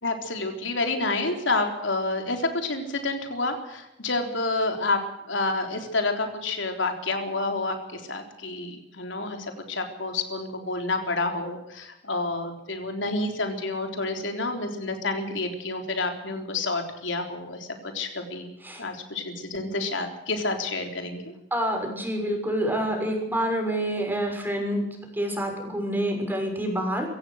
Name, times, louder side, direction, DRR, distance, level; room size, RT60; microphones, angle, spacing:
voice 1, 0.0-5.0 5.3-18.5 18.8-21.3, left 3 dB, 80° left, 4 dB, 3.7 m, -29 dB
voice 2, 21.5-24.8 25.1-27.1, right 1 dB, 10° right, 2 dB, 6.2 m, -27 dB
25.0 x 16.5 x 6.5 m, 0.84 s
head